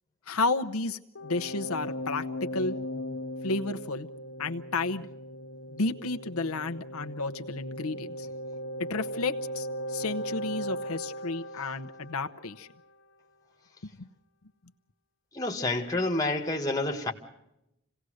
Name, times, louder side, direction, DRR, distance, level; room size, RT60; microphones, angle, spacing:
voice 1, 0.3-2.8 3.4-4.1 4.4-5.1 5.7-8.3 8.9-12.7 14.0-14.1, left 3 dB, 85° left, 0.9 m, -32 dB
sound 1, 1.2-12.8, equal, 55° left, 1.0 m, -38 dB
voice 2, 15.3-17.1, left 2 dB, 15° left, 1.8 m, -28 dB
27.0 x 17.5 x 6.4 m
head